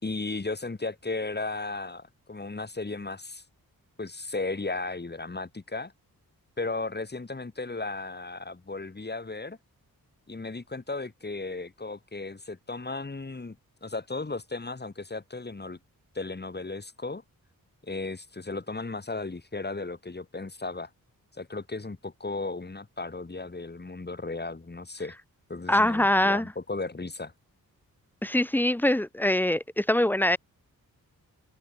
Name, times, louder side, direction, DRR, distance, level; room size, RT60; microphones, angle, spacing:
voice 1, 0.0-3.4 4.0-5.9 6.6-9.6 10.3-13.6 13.8-15.8 16.1-17.2 17.8-20.9 21.3-25.2 25.5-27.3, left 3 dB, 30° left, 5.4 m, -35 dB
voice 2, 25.7-26.5 28.2-30.4, left 1 dB, 5° left, 1.0 m, -23 dB
cardioid pair, 95°, 36 cm